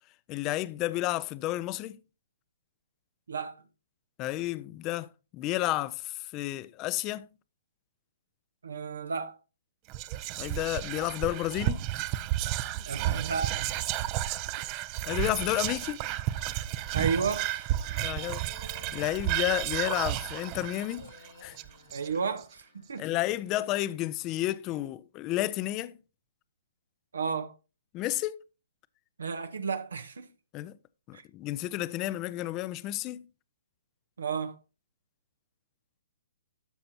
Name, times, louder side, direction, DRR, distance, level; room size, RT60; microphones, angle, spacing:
voice 1, 0.3-2.0 4.2-7.3 10.4-11.8 15.1-16.0 18.0-18.4 18.9-21.1 21.4-21.6 23.0-25.9 27.9-28.4 30.5-30.7 31.1-33.3, left 16 dB, 25° left, 0.4 m, -31 dB
voice 2, 3.3-3.6 8.6-9.4 12.9-13.7 16.9-17.7 18.6-18.7 21.9-23.1 27.1-27.5 29.2-30.3 31.1-31.2 34.2-34.6, right 5 dB, 85° right, 0.9 m, -32 dB
Whispering, 9.9-22.4, right 14 dB, 30° right, 0.5 m, -32 dB
sound 1, 16.3-23.3, left 4 dB, 85° left, 1.6 m, -55 dB
12.5 x 5.9 x 2.8 m
hypercardioid pair, 145°, 0 cm